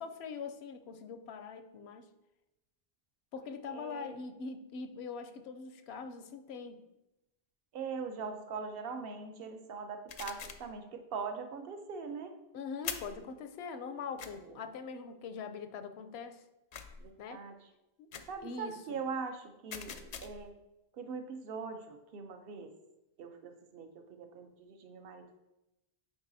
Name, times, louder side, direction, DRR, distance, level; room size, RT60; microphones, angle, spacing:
voice 1, 0.0-2.1 3.3-6.8 12.5-16.4 17.2-17.4 18.0-18.1 18.4-19.0, left 5 dB, 85° left, 9 dB, 0.8 m, -43 dB
voice 2, 3.7-4.2 7.7-12.4 14.4-14.6 17.0-17.6 18.3-20.5 20.9-22.7 23.2-25.4, right 5 dB, 70° right, 6 dB, 0.9 m, -42 dB
sound 1, 10.1-10.7 12.8-13.2 14.2-14.3 16.7-17.1 18.1-18.4 19.7-20.5, left 6 dB, 55° left, 0.5 m, -43 dB
8.1 x 4.7 x 2.6 m, 0.94 s
omnidirectional pair, 1.0 m